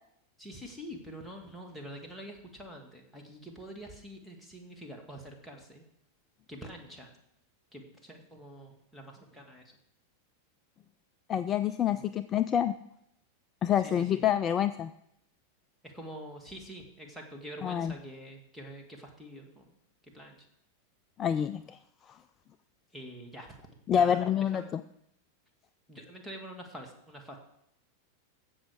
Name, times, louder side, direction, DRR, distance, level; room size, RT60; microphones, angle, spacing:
voice 1, 0.4-5.8 6.5-7.1 7.7-9.6 11.9-12.0 13.8-14.3 15.8-19.7 20.0-20.5 22.9-23.6 23.9-24.7 25.9-27.4, equal, ahead, 1 dB, 2.3 m, -46 dB
voice 2, 11.3-12.7 13.6-14.9 17.6-17.9 21.2-21.8 23.9-24.8, left 9 dB, 25° left, 12 dB, 0.4 m, -27 dB
16.0 x 6.4 x 5.0 m, 0.76 s
figure-of-eight pair, 90°, 0 cm